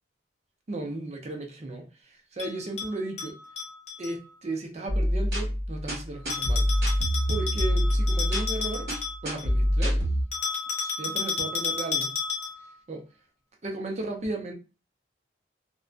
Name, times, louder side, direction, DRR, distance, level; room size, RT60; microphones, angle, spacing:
voice 1, 0.7-3.4 4.0-6.7 7.3-8.9 9.2-10.1 11.0-12.1 12.9-13.1 13.6-14.5, right 2 dB, 40° right, 0.5 m, -35 dB
Bell, 2.4-4.1 6.3-9.5 10.3-12.7, left 5 dB, 40° left, 0.6 m, -32 dB
sound 1, 4.9-10.2, equal, 60° right, 1.1 m, -26 dB
2.5 x 2.2 x 2.3 m
head